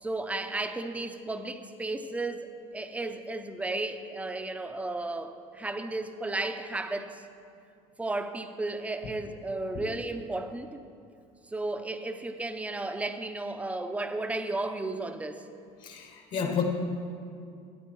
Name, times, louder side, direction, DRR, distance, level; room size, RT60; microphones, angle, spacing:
voice 1, 0.0-7.2 8.0-10.8 11.5-15.5, right 2 dB, 10° right, 8 dB, 0.6 m, -34 dB
voice 2, 15.8-16.6, left 7 dB, 55° left, 3 dB, 1.5 m, -31 dB
14.0 x 8.7 x 4.6 m, 2.4 s
supercardioid pair, 115°, 16 cm